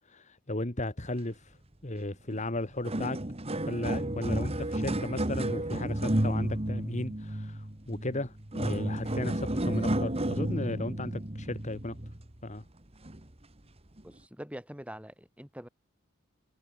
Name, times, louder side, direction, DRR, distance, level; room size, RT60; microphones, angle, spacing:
voice 1, 0.1-1.5 1.8-3.2 3.7-12.0 12.4-12.6, left 2 dB, 35° left, 2.0 m, -35 dB
sound 1, 2.3-2.4 2.7-12.4 13.0-13.2 14.0-14.1, right 1 dB, 30° right, 2.0 m, -32 dB
voice 2, 14.0-15.7, equal, 5° right, 5.8 m, -44 dB
head